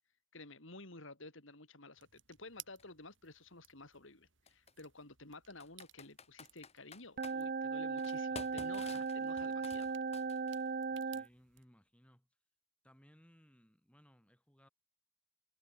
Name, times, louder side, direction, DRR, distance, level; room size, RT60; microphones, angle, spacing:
voice 1, 0.3-10.0, left 2 dB, 65° left, 3.8 m, -53 dB
sound 1, 2.0-11.6, right 14 dB, 60° right, 4.1 m, -61 dB
Computer keyboard, 2.8-2.9 4.5-4.7 5.6-7.4 8.0-10.7, left 4 dB, 30° left, 2.7 m, -52 dB
sound 2, 7.2-11.3, right 5 dB, 45° right, 0.5 m, -37 dB
voice 2, 10.9-12.3 12.8-14.7, equal, 5° left, 6.6 m, -65 dB
head